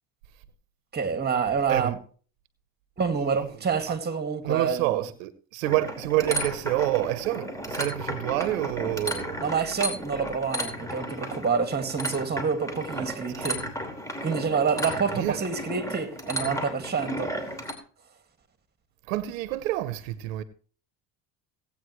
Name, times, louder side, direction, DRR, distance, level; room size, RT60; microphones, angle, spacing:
voice 1, 0.9-2.0 3.0-4.9 9.4-13.6 14.2-17.3, right 6 dB, 25° right, 2.2 m, -27 dB
voice 2, 3.2-3.5 3.9-4.0 4.4-9.4 13.0-13.1 13.3-13.5 15.1-15.4 19.1-20.4, right 15 dB, 85° right, 0.9 m, -28 dB
sound 1, 5.6-17.7, equal, 10° left, 2.8 m, -34 dB
17.5 x 8.7 x 3.2 m
supercardioid pair, 90°, 39 cm